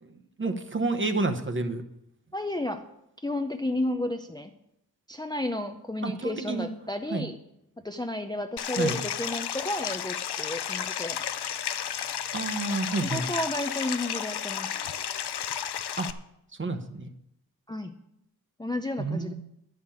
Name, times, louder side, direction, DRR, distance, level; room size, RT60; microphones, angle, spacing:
voice 1, 0.0-1.8 6.0-6.7 7.1-7.3 8.8-9.0 12.3-13.2 16.0-16.1 16.6-17.1 19.0-19.3, right 3 dB, 30° right, 6 dB, 1.0 m, -29 dB
voice 2, 2.3-2.8 3.2-4.5 5.1-7.4 7.8-11.2 13.0-14.8 17.7-18.0 18.6-19.3, left 1 dB, 10° left, 5 dB, 0.5 m, -32 dB
Stream, 8.6-16.1, left 9 dB, 85° left, 0.6 m, -32 dB
11.5 x 5.7 x 8.5 m, 0.80 s
wide cardioid pair, 130°, 38 cm